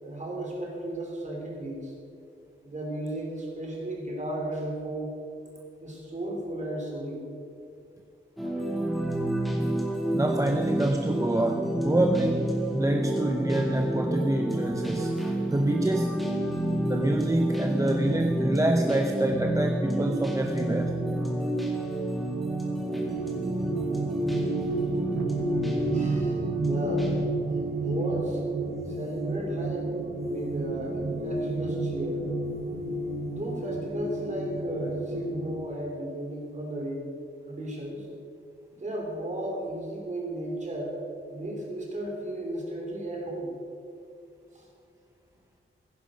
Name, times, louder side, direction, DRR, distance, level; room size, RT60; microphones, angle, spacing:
voice 1, 0.0-1.9 2.6-5.1 5.8-7.3 25.9-27.1 27.8-28.4 28.8-29.9 30.2-32.3 33.2-37.1 37.4-38.1 38.7-40.9 41.3-43.5 44.5-44.6, right 1 dB, 35° right, -1 dB, 3.2 m, -34 dB
sound 1, 8.4-27.3, right 1 dB, ahead, 1.9 m, -30 dB
voice 2, 10.1-16.3 16.9-20.9, right 1 dB, 15° right, 3 dB, 0.7 m, -26 dB
sound 2, 22.8-35.5, right 2 dB, 50° right, 1.1 m, -31 dB
15.5 x 11.0 x 5.1 m, 2.5 s
wide cardioid pair, 160°, 21 cm